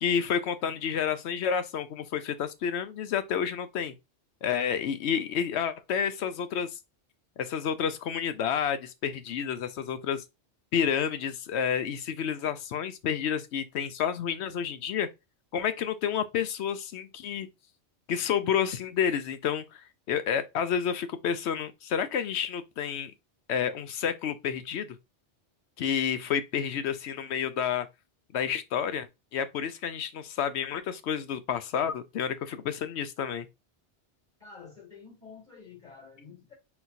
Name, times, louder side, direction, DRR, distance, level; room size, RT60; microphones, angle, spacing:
voice 1, 0.0-3.9 4.4-6.8 7.4-10.2 10.7-15.1 15.5-17.5 18.1-19.8 20.1-23.1 23.5-25.0 25.8-27.9 28.3-33.5, left 8 dB, 75° left, 0.9 m, -30 dB
voice 2, 34.4-36.5, left 5 dB, 40° left, 2.9 m, -49 dB
4.2 x 4.0 x 2.6 m
omnidirectional pair, 1.2 m